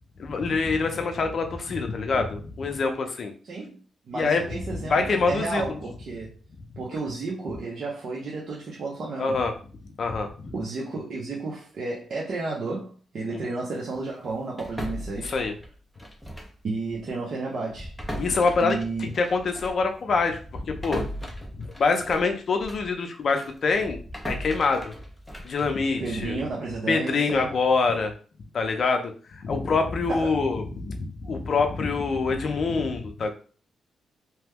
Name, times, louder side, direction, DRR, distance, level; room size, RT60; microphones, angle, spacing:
voice 1, 0.2-3.3 4.1-4.4 4.9-5.8 9.2-9.5 10.0-10.5 13.3-13.4 15.2-15.5 18.2-21.1 21.6-24.9 25.4-26.4 26.9-28.1 28.5-33.3, left 4 dB, 50° left, 0.6 m, -25 dB
voice 2, 3.4-3.8 4.1-6.3 6.8-9.4 10.5-15.4 16.6-17.9 18.6-19.1 26.0-27.5 30.1-30.4, right 3 dB, 55° right, 0.8 m, -32 dB
sound 1, 14.6-16.6 16.9-17.1 17.7-22.9 23.4-26.4, equal, ahead, 0.6 m, -38 dB
2.9 x 2.2 x 3.4 m
cardioid pair, 115°, 0 cm